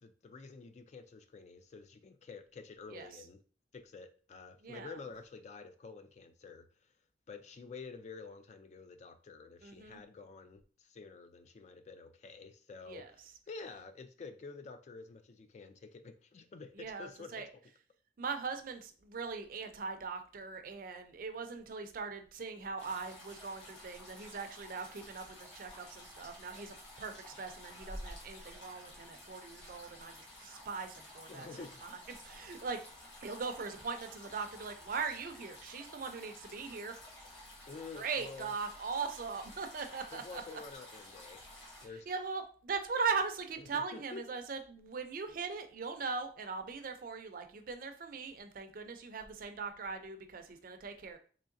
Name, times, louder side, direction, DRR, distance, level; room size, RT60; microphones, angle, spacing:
voice 1, 0.0-3.4 3.7-6.6 7.3-17.4 31.3-31.8 37.7-38.5 40.1-41.4 41.8-42.1 43.6-44.2, left 4 dB, 40° left, 8 dB, 0.3 m, -49 dB
voice 2, 4.6-4.9 9.6-10.0 12.9-13.1 16.8-17.5 18.2-31.5 32.1-32.8 33.2-37.0 37.9-40.4 42.1-51.2, right 5 dB, 50° right, 7 dB, 0.5 m, -40 dB
sound 1, 22.8-41.9, left 1 dB, 90° left, 1.2 m, -52 dB
3.7 x 3.1 x 2.5 m, 0.42 s
head